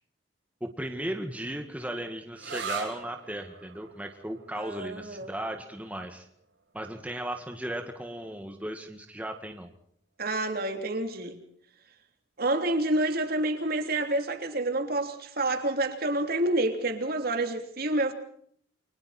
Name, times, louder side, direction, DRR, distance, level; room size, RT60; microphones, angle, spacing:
voice 1, 0.6-6.3 6.7-9.7, right 1 dB, 10° right, 1.8 m, -36 dB
sound 1, 2.4-9.7, right 5 dB, 80° right, 6.6 m, -43 dB
voice 2, 4.6-5.3 10.2-11.4 12.4-18.1, right 2 dB, 55° right, 3.3 m, -28 dB
29.5 x 24.5 x 4.4 m
head